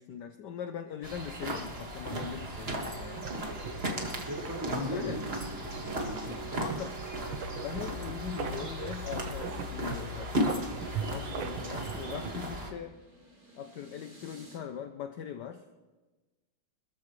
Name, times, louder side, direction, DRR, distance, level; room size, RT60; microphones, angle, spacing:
voice 1, 0.0-3.3 4.9-5.2 6.5-7.0 7.5-10.7 11.1-13.0 13.6-15.6, left 8 dB, 65° left, 7 dB, 1.2 m, -41 dB
sound 1, 1.0-12.7, equal, 30° right, 2.1 m, -36 dB
sound 2, 2.1-12.3, right 6 dB, 70° right, 1.8 m, -41 dB
voice 2, 4.3-5.4 5.7-6.8, left 1 dB, 10° right, -6 dB, 5.0 m, -38 dB
sound 3, 11.6-14.6, right 1 dB, 90° right, 6.7 m, -57 dB
26.0 x 14.5 x 3.2 m, 1.2 s
omnidirectional pair, 2.2 m